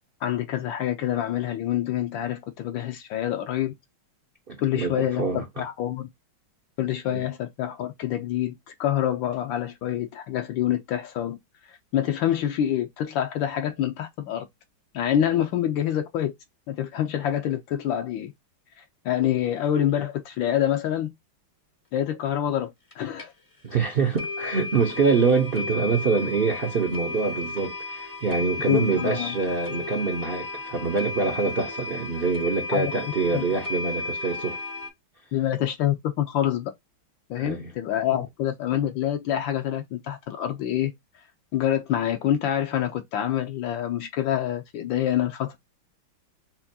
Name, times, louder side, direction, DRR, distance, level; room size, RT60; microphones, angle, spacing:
voice 1, 0.2-3.7 4.6-6.1 6.8-8.5 8.8-11.4 11.9-14.5 14.9-16.3 16.7-18.3 18.8-21.1 21.9-23.3 28.7-29.3 32.7-32.9 33.3-33.4 35.3-36.7 37.3-40.9 41.5-45.6, left 11 dB, 75° left, 1.3 m, -26 dB
voice 2, 4.5-5.4 7.1-7.2 23.6-34.6 37.4-37.7, right 4 dB, 60° right, 0.5 m, -25 dB
sound 1, 22.9-23.0 23.2-23.3 23.7-23.8 24.2-34.9, left 3 dB, 40° left, 0.4 m, -34 dB
5.8 x 2.2 x 2.7 m
omnidirectional pair, 2.2 m